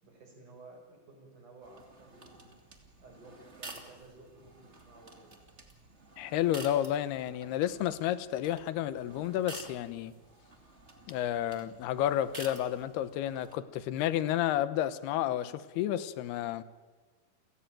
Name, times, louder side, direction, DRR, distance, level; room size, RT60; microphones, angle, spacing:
voice 1, 0.0-2.5 3.0-5.3, right 2 dB, 50° right, 2 dB, 7.5 m, -54 dB
sound 1, 1.6-13.5, right 2 dB, 20° right, 2.4 m, -51 dB
voice 2, 6.2-10.1 11.1-16.6, left 12 dB, 85° left, 15 dB, 3.0 m, -31 dB
30.0 x 17.5 x 9.1 m, 1.4 s
omnidirectional pair, 4.5 m